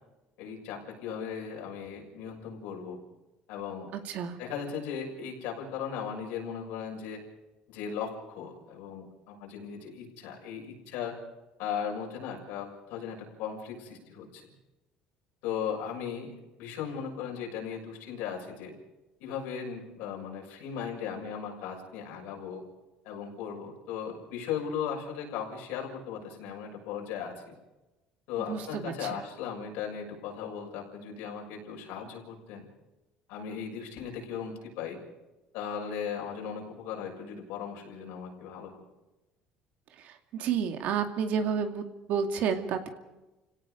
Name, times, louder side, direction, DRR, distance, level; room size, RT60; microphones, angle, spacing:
voice 1, 0.4-3.0 3.5-3.9 4.4-7.2 7.7-11.2 11.6-14.5 15.4-18.7 19.2-22.6 23.0-27.5 28.3-32.7 33.3-35.0 35.5-38.8, left 7 dB, 80° left, 1 dB, 6.6 m, -37 dB
voice 2, 3.9-4.4 28.5-28.9 40.3-42.9, right 7 dB, 60° right, 6 dB, 2.3 m, -30 dB
30.0 x 17.5 x 5.2 m, 1.0 s
cardioid pair, 125°, 3 cm